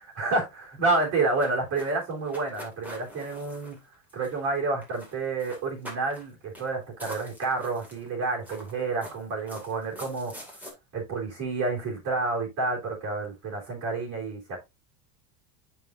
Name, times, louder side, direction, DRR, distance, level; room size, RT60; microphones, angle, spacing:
voice 1, 0.1-3.8 4.1-10.3 10.9-14.6, right 3 dB, 45° right, -2 dB, 3.3 m, -29 dB
sound 1, 0.9-4.6 4.8-5.1 5.4-6.3 6.5-6.7 7.0-8.1 8.4-10.7, equal, 5° right, 2.2 m, -44 dB
8.1 x 5.8 x 2.5 m, 0.22 s
supercardioid pair, 150°, 39 cm